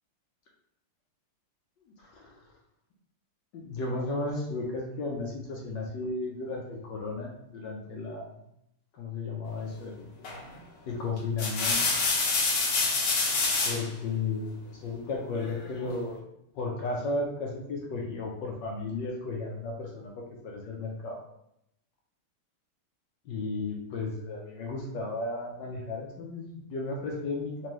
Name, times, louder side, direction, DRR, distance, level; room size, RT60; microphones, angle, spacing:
voice 1, 2.0-2.3 3.5-8.3 8.9-10.1 10.9-11.8 13.6-16.2 16.5-21.2 23.3-27.7, left 3 dB, 70° left, -1 dB, 1.2 m, -34 dB
sound 1, 10.2-10.5 11.2-13.9 15.3-16.0, left 3 dB, 85° left, 2.0 m, -27 dB
4.5 x 2.6 x 3.0 m, 0.78 s
omnidirectional pair, 2.4 m